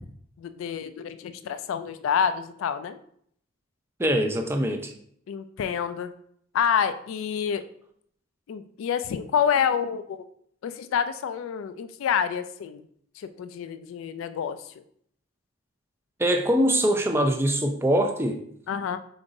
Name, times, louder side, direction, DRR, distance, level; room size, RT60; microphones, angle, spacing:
voice 1, 0.4-3.0 5.3-6.1 6.5-7.6 8.5-10.2 10.6-12.8 13.2-14.6 18.7-19.0, left 7 dB, 75° left, 11 dB, 0.3 m, -28 dB
voice 2, 4.0-4.9 16.2-18.4, equal, 10° right, 4 dB, 0.4 m, -23 dB
5.2 x 3.9 x 2.6 m, 0.66 s
head